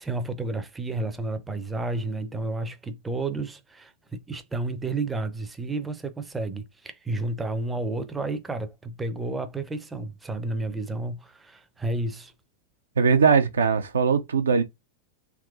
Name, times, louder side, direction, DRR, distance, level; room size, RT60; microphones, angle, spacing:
voice 1, 0.0-12.3, right 2 dB, 10° right, 0.5 m, -31 dB
voice 2, 13.0-14.6, right 5 dB, 70° right, 0.5 m, -20 dB
3.6 x 2.8 x 2.3 m
figure-of-eight pair, 90°, 0 cm